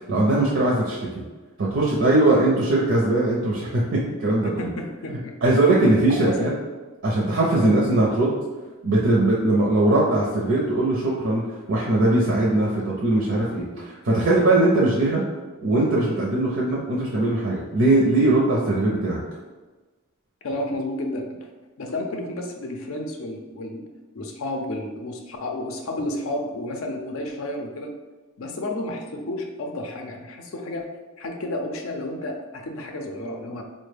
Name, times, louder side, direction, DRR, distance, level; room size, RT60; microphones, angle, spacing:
voice 1, 0.1-1.0 1.6-4.7 5.1-6.5 7.0-8.4 8.8-15.2 15.6-19.2, right 2 dB, 60° right, -4 dB, 0.5 m, -20 dB
voice 2, 4.6-5.4 6.2-6.5 7.2-7.7 20.4-21.5 21.8-23.8 24.1-27.9 28.4-33.6, left 1 dB, 75° left, 3 dB, 0.5 m, -31 dB
4.2 x 2.1 x 3.3 m, 1.3 s
head